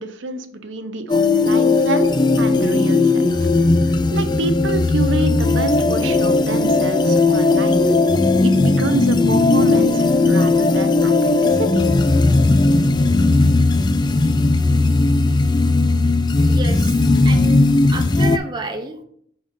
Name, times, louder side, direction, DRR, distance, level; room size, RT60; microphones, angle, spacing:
voice 1, 0.0-3.3 3.9-7.9 8.4-11.9, right 3 dB, 60° right, 7 dB, 0.7 m, -27 dB
sound 1, 1.1-18.4, left 3 dB, 20° left, 0.3 m, -16 dB
voice 2, 16.4-19.0, right 3 dB, 20° right, 2 dB, 0.6 m, -31 dB
6.1 x 3.9 x 5.3 m, 0.64 s
head